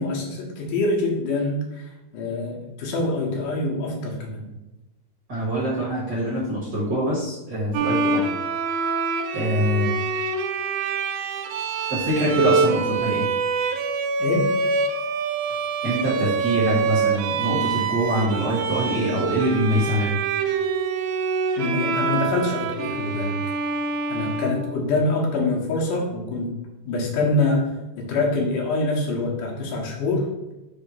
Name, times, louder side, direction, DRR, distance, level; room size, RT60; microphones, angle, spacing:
voice 1, 0.0-1.8 2.1-4.5 14.2-14.5 21.6-23.3 24.1-26.5 26.9-27.6 28.0-30.3, left 2 dB, 80° left, -1 dB, 2.8 m, -25 dB
voice 2, 5.3-8.3 8.7-8.9 9.3-9.9 11.9-13.2 15.8-20.2, equal, 40° right, -6 dB, 1.6 m, -24 dB
Bowed string instrument, 7.7-25.2, right 4 dB, 80° right, 2.0 m, -25 dB
6.1 x 3.4 x 5.6 m, 0.99 s
omnidirectional pair, 3.7 m